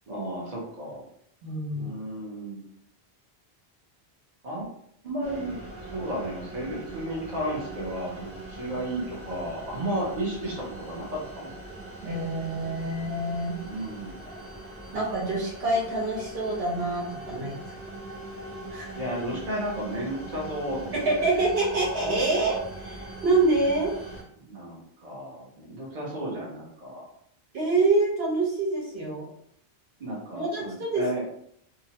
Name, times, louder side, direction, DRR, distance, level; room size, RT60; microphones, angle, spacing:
voice 1, 0.1-1.0 1.8-2.6 4.4-4.7 5.0-11.5 13.6-14.1 18.9-20.9 24.4-27.1 30.0-31.3, right 1 dB, 45° right, -4 dB, 0.8 m, -33 dB
voice 2, 1.4-1.9 12.0-13.6 14.9-17.6 18.7-18.9 21.0-23.9 27.5-29.3 30.3-31.0, right 2 dB, 70° right, -4 dB, 1.2 m, -26 dB
sound 1, 5.2-24.2, right 2 dB, 15° right, 0.8 m, -41 dB
2.8 x 2.1 x 2.8 m, 0.70 s
omnidirectional pair, 1.1 m